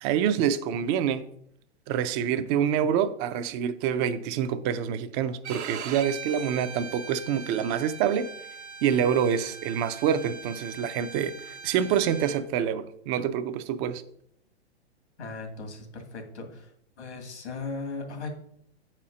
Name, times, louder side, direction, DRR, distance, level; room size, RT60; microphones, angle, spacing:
voice 1, 0.0-1.2 1.9-8.3 8.8-14.0, right 8 dB, 25° right, 0.4 m, -26 dB
Bowed string instrument, 5.4-12.4, right 6 dB, 80° right, 1.1 m, -41 dB
voice 2, 15.2-16.7 17.0-18.3, left 3 dB, 80° left, 2.1 m, -37 dB
8.3 x 4.3 x 4.9 m
hypercardioid pair, 130°, 33 cm